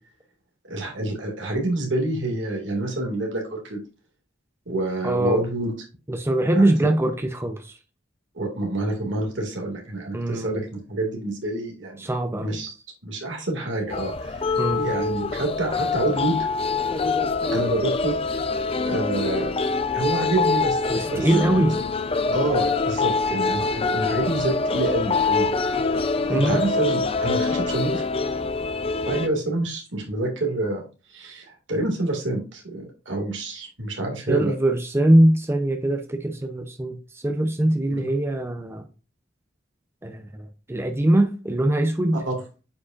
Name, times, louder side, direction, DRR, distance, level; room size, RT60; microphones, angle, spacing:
voice 1, 0.6-3.8 4.7-5.7 8.4-12.1 12.4-12.7 13.0-16.4 17.5-18.2 18.8-19.5 19.9-21.7 22.3-25.5 26.3-28.1 29.1-30.8 31.1-34.5 37.9-38.1 42.3-42.4, right 2 dB, 75° right, 2.2 m, -27 dB
voice 2, 5.0-5.4 6.1-7.7 10.1-10.6 12.0-12.6 14.6-14.8 20.9-21.8 26.3-26.6 34.3-38.9 40.0-42.2, right 1 dB, 15° right, 0.6 m, -22 dB
sound 1, 13.9-29.3, left 4 dB, 30° left, 0.5 m, -25 dB
8.3 x 5.1 x 2.5 m
head